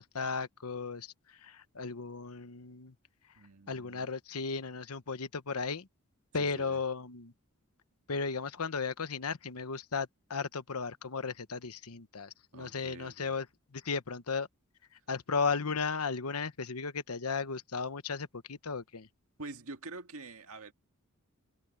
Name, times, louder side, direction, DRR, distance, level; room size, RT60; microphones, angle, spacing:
voice 1, 0.0-2.9 3.7-5.9 6.3-7.3 8.1-13.5 13.7-14.5 15.1-19.1, left 5 dB, 90° left, 1.1 m, -35 dB
voice 2, 3.4-4.1 6.3-6.8 12.5-13.3 19.4-20.7, right 3 dB, 70° right, 1.8 m, -46 dB
head